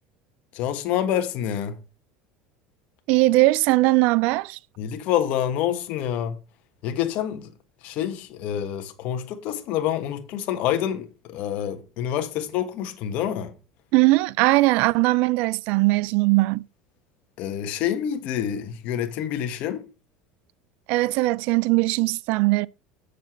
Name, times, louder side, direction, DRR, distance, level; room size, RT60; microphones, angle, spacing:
voice 1, 0.5-1.8 4.8-6.3 6.8-7.5 7.8-13.5 17.4-19.8, left 10 dB, 60° left, 1.4 m, -27 dB
voice 2, 3.1-4.6 13.9-16.6 20.9-22.7, right 21 dB, 65° right, 0.4 m, -20 dB
7.4 x 6.7 x 4.5 m
supercardioid pair, 100°, 3 cm